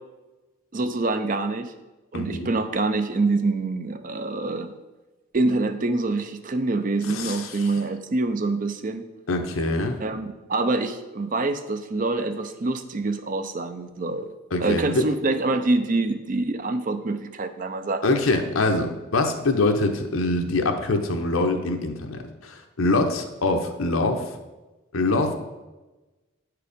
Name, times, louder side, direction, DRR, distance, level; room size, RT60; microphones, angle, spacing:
voice 1, 0.7-1.7 2.1-4.7 5.3-9.0 10.0-14.3 14.6-18.1, right 3 dB, 40° right, 9 dB, 0.5 m, -25 dB
voice 2, 2.1-2.5 7.1-7.6 9.3-10.0 14.5-15.1 18.0-24.3 24.9-25.3, left 2 dB, 80° left, 4 dB, 0.9 m, -24 dB
9.0 x 4.8 x 5.1 m, 1.1 s
head